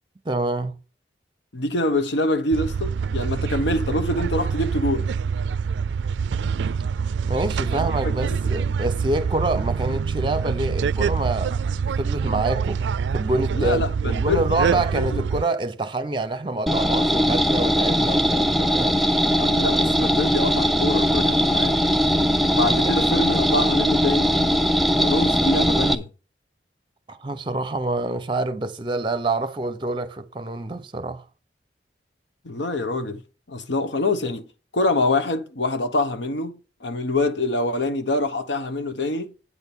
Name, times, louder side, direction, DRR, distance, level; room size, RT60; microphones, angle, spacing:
voice 1, 0.2-0.7 7.3-11.6 12.0-12.8 13.1-19.1 22.8-22.9 27.1-31.2, right 2 dB, 25° right, 0.7 m, -26 dB
voice 2, 1.5-5.1 7.7-8.5 13.5-15.2 19.3-21.8 22.5-24.4 25.0-26.1 32.4-33.2 33.5-34.5 34.7-39.3, left 2 dB, 85° left, 1.0 m, -25 dB
sound 1, 2.5-15.4, right 6 dB, 85° right, 0.3 m, -25 dB
sound 2, 16.7-26.0, equal, ahead, 0.4 m, -20 dB
8.6 x 4.3 x 6.9 m
head